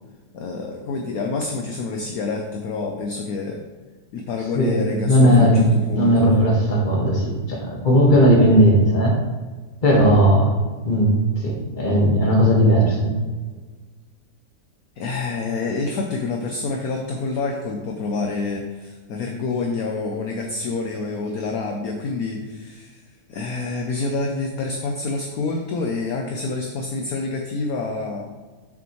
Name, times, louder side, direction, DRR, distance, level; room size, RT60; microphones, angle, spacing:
voice 1, 0.3-3.6 4.1-6.3 15.0-23.0 23.3-28.3, left 3 dB, 65° left, 2 dB, 1.1 m, -27 dB
voice 2, 4.5-9.2 9.8-10.5 10.8-13.1, equal, 30° left, -2 dB, 1.5 m, -17 dB
7.0 x 6.2 x 3.1 m, 1.4 s
omnidirectional pair, 1.9 m